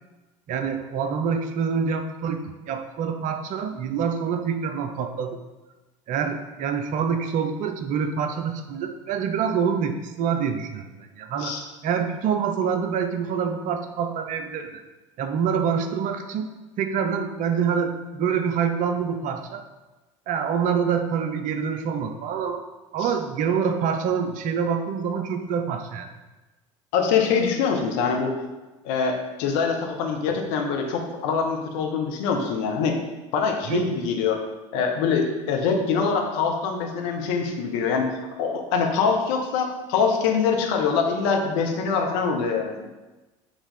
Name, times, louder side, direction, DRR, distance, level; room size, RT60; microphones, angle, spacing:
voice 1, 0.5-5.4 6.1-11.6 11.8-14.8 15.2-16.5 16.8-19.6 20.3-22.6 22.9-26.1 33.7-33.9, right 6 dB, 50° right, 7 dB, 0.8 m, -26 dB
voice 2, 26.9-28.3 28.8-33.0 33.3-34.4 34.7-42.9, left 5 dB, 65° left, 2 dB, 1.1 m, -24 dB
7.3 x 3.5 x 5.5 m, 1.1 s
hypercardioid pair, 70°, 17 cm